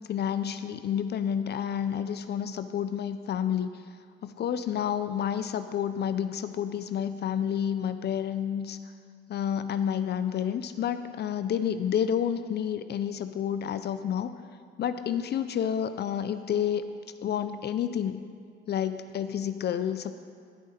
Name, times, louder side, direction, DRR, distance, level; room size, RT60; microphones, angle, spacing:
voice 1, 0.0-3.7 4.2-8.8 9.3-14.3 14.8-16.8 17.2-18.2 18.7-20.1, left 9 dB, 55° left, 11 dB, 0.5 m, -29 dB
14.0 x 4.9 x 4.2 m, 2.3 s
cardioid pair, 90°, 20 cm